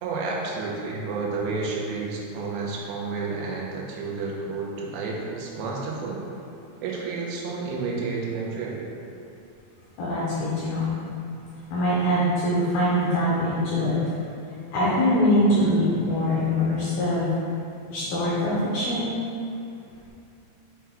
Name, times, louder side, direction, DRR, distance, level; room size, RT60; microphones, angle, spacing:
voice 1, 0.0-6.2 6.8-8.8, right 4 dB, 85° right, -3 dB, 3.0 m, -30 dB
voice 2, 10.0-11.0 11.7-14.1 14.7-17.3 17.9-19.2, left 1 dB, 75° left, -8 dB, 2.3 m, -23 dB
7.2 x 6.0 x 2.3 m, 2.6 s
omnidirectional pair, 5.1 m